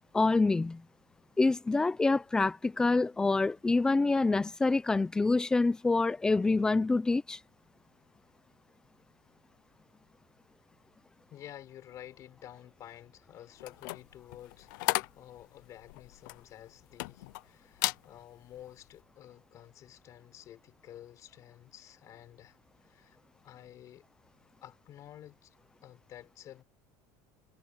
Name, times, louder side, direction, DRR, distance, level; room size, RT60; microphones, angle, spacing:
voice 1, 0.1-0.8 1.4-7.4, left 3 dB, 5° left, 0.6 m, -26 dB
voice 2, 11.3-23.2 23.4-24.0 24.6-25.5 25.8-26.6, left 12 dB, 30° left, 4.8 m, -51 dB
sound 1, 13.6-17.4 17.7-18.1 18.5-18.8, left 22 dB, 90° left, 0.6 m, -35 dB
cardioid pair, 180°, 10 cm